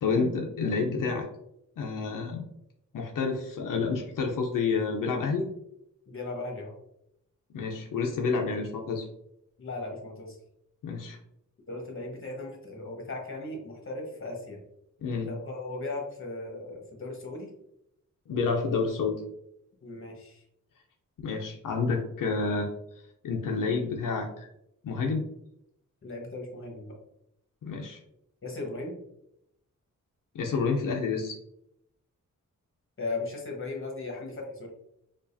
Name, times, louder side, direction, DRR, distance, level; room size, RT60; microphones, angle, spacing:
voice 1, 0.0-1.3 1.8-2.4 2.9-5.5 7.5-9.0 10.8-11.2 15.0-15.3 18.3-19.2 21.2-22.7 23.2-24.5 24.8-25.2 27.6-28.0 30.3-31.4, left 4 dB, 85° left, 1 dB, 0.6 m, -29 dB
voice 2, 6.1-6.8 9.6-10.4 11.7-14.6 15.3-17.5 19.8-20.4 26.0-26.9 28.4-29.0 33.0-34.7, left 2 dB, 40° left, 0 dB, 1.1 m, -37 dB
4.7 x 2.4 x 2.6 m, 0.78 s
wide cardioid pair, 115°, 32 cm